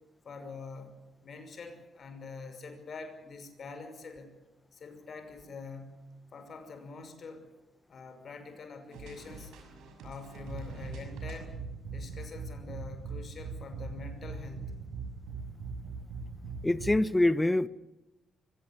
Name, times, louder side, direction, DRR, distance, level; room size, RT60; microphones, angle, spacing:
voice 1, 0.2-4.4 4.7-7.5 7.9-9.5 10.0-11.6 11.9-14.8, left 4 dB, 55° left, 5.7 m, -45 dB
sound 1, 8.9-17.0, right 4 dB, 85° right, 6.4 m, -41 dB
voice 2, 16.6-17.7, left 1 dB, 15° left, 1.1 m, -25 dB
24.0 x 17.0 x 9.8 m
supercardioid pair, 70°, 0 cm